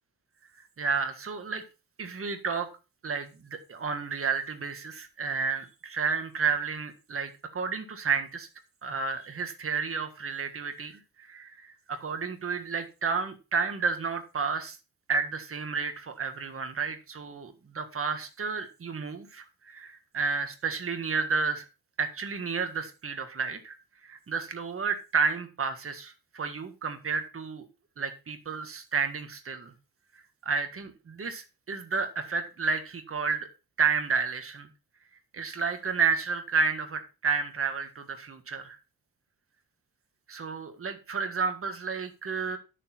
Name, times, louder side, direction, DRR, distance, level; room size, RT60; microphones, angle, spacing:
voice 1, 0.8-1.6 2.0-2.7 3.0-8.5 8.8-14.8 15.1-21.6 22.0-23.8 24.0-27.6 28.0-29.7 30.4-33.5 33.8-34.7 35.3-38.8 40.3-42.6, right 5 dB, 35° right, 7 dB, 1.6 m, -31 dB
11.5 x 6.7 x 4.4 m, 0.30 s
wide cardioid pair, 170°, 37 cm